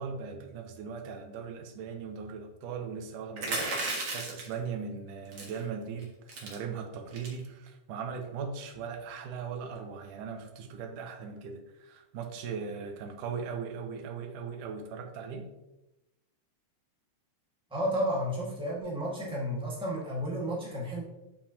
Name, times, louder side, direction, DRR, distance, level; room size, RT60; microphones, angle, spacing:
voice 1, 0.0-15.5, right 6 dB, 85° right, 5 dB, 2.4 m, -39 dB
sound 1, 3.4-4.5 5.3-5.6 6.0-6.1 6.3-6.5 7.1-7.4, right 2 dB, 50° right, 1.9 m, -33 dB
voice 2, 17.7-21.0, equal, 5° right, -5 dB, 0.7 m, -32 dB
9.0 x 5.3 x 2.9 m, 0.96 s
omnidirectional pair, 3.5 m